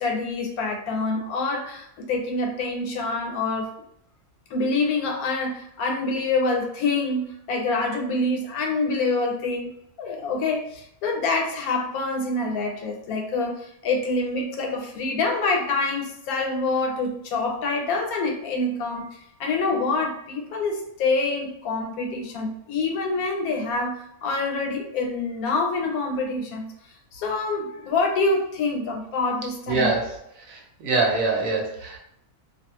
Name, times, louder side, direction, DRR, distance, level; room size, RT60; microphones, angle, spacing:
voice 1, 0.0-3.7 4.5-19.1 19.4-26.6 27.1-29.9, left 3 dB, 90° left, 1 dB, 1.1 m, -26 dB
voice 2, 29.7-30.2 30.5-32.0, right 3 dB, 70° right, 0 dB, 1.0 m, -24 dB
2.3 x 2.2 x 2.9 m, 0.76 s
omnidirectional pair, 1.5 m